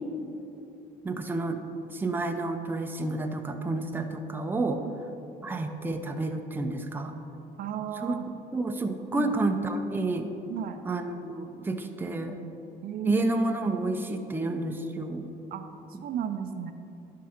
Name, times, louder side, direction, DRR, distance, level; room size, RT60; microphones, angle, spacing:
voice 1, 1.0-4.8 5.4-7.1 8.0-10.3 10.9-12.4 13.0-15.3, right 2 dB, 10° right, 4 dB, 0.5 m, -30 dB
voice 2, 7.6-8.2 9.1-9.3 10.5-10.8 12.8-13.2 15.5-16.7, right 9 dB, 60° right, 7 dB, 0.5 m, -34 dB
10.5 x 3.7 x 5.8 m, 3.0 s
cardioid pair, 110°, 17 cm